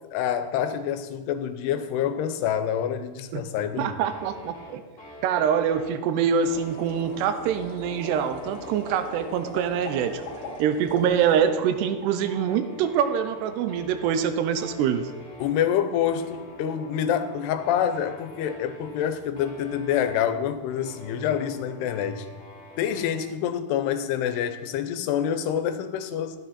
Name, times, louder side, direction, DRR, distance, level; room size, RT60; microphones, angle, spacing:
voice 1, 0.1-4.0 15.4-22.3 22.8-26.4, left 9 dB, 90° left, 10 dB, 2.8 m, -27 dB
voice 2, 3.8-4.8 5.2-10.2 10.6-15.1, right 8 dB, 85° right, 10 dB, 2.9 m, -25 dB
sound 1, 4.1-23.2, left 1 dB, 20° left, 2.3 m, -45 dB
sound 2, 6.4-11.4, left 2 dB, 40° left, 3.0 m, -41 dB
12.5 x 10.5 x 4.2 m, 1.3 s
omnidirectional pair, 4.7 m